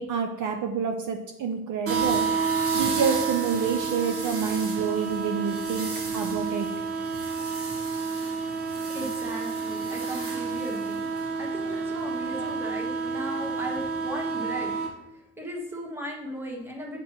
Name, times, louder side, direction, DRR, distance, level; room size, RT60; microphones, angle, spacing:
voice 1, 0.0-2.3 2.7-6.7, right 6 dB, 55° right, 4 dB, 0.6 m, -28 dB
sound 1, 1.9-14.9, right 5 dB, 35° right, 1.2 m, -29 dB
voice 2, 8.9-17.0, equal, 5° right, -1 dB, 1.2 m, -37 dB
8.4 x 5.9 x 3.0 m, 0.89 s
cardioid pair, 160°, 38 cm